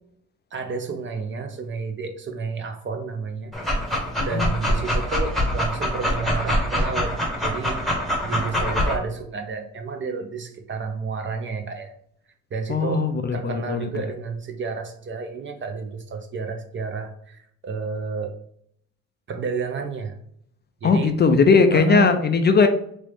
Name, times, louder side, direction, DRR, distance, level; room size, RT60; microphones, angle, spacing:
voice 1, 0.5-3.5 4.2-7.2 7.4-7.8 8.2-11.9 12.5-18.4 19.3-20.2 20.8-21.2 21.7-22.2, right 5 dB, 40° right, 5 dB, 0.6 m, -30 dB
Dog, 3.5-9.0, equal, ahead, 1.0 m, -24 dB
voice 2, 12.7-13.9 20.8-22.7, left 5 dB, 35° left, 7 dB, 0.4 m, -18 dB
3.1 x 2.5 x 3.3 m, 0.66 s
cardioid pair, 90°, 30 cm